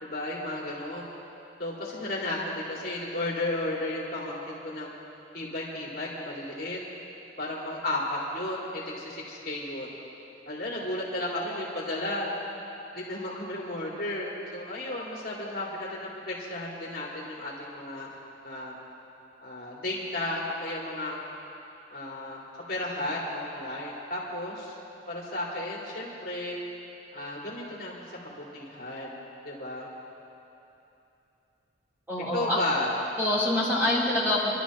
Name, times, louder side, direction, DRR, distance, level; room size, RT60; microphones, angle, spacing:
voice 1, 0.0-1.1 1.6-4.9 5.3-6.8 7.4-9.9 10.5-12.3 12.9-18.1 18.4-18.7 19.4-21.2 21.9-22.4 22.7-24.8 25.1-26.6 27.1-29.9 32.3-32.9, left 1 dB, 55° left, -5 dB, 2.7 m, -33 dB
voice 2, 32.1-32.6 33.2-34.5, left 1 dB, 10° right, -9 dB, 3.8 m, -25 dB
28.5 x 12.0 x 3.1 m, 2.9 s
head